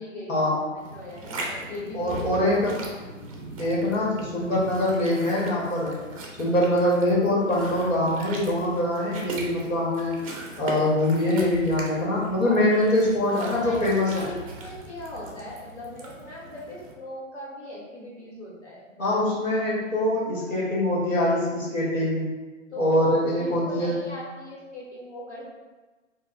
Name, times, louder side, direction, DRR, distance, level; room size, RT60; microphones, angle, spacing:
voice 1, 0.0-3.1 12.4-12.9 13.2-19.2 19.6-19.9 20.5-20.7 22.7-23.1 23.4-25.4, left 1 dB, 60° left, -5 dB, 1.4 m, -39 dB
sound 1, 0.8-16.9, right 2 dB, 30° right, 0.5 m, -39 dB
voice 2, 1.9-2.7 3.6-5.9 6.4-10.1 10.6-14.3 19.0-22.2 22.8-24.0, left 1 dB, 80° left, -5 dB, 1.4 m, -23 dB
2.4 x 2.3 x 4.0 m, 1.3 s
figure-of-eight pair, 135°, 38 cm